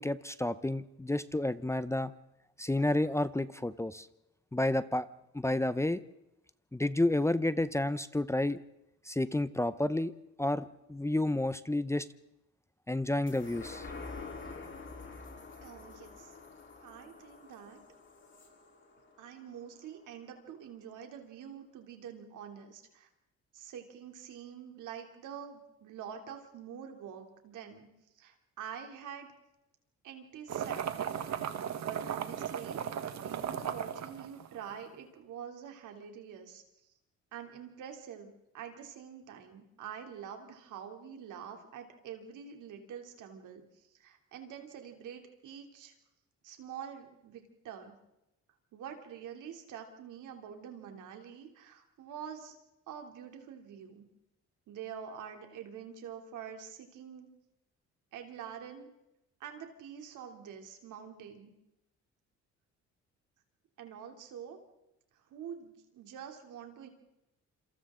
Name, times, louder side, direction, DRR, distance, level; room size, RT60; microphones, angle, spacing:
voice 1, 0.0-2.1 2.6-4.1 4.5-5.1 5.3-6.0 6.7-8.6 9.1-10.1 10.4-12.1 12.9-13.9, left 1 dB, 10° left, 14 dB, 0.7 m, -30 dB
sound 1, 13.3-20.0 20.5-20.6, left 4 dB, 40° left, 4.0 m, -47 dB
voice 2, 15.6-16.3 16.8-17.8 19.2-23.1 23.5-27.9 28.2-29.3 30.0-31.2 31.8-32.8 33.2-36.6 37.3-43.6 43.9-45.9 46.4-47.9 48.7-52.5 52.9-54.1 54.7-57.3 58.1-58.9 59.4-61.5 63.8-64.6 65.1-66.9, right 8 dB, 85° right, 4 dB, 3.2 m, -46 dB
sound 2, 30.5-34.9, right 8 dB, 65° right, 1.5 m, -36 dB
27.5 x 26.5 x 3.8 m, 0.89 s
cardioid pair, 90°, 30 cm